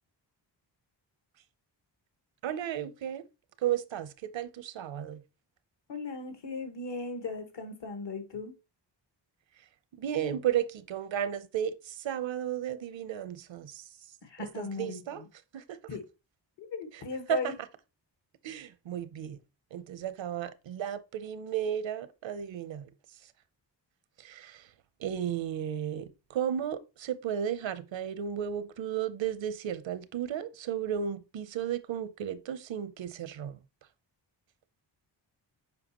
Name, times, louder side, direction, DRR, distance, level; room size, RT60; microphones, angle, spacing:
voice 1, 2.4-3.2 3.6-5.2 10.0-13.8 14.6-15.2 15.5-15.8 17.3-17.4 18.4-19.4 19.7-22.9 24.2-24.7 25.0-33.6, right 9 dB, 80° right, 0.7 m, -34 dB
voice 2, 5.9-8.5 14.2-15.3 15.9-16.0 16.6-17.5, left 4 dB, 70° left, 1.6 m, -37 dB
7.6 x 5.0 x 2.9 m
cardioid pair, 90°, 44 cm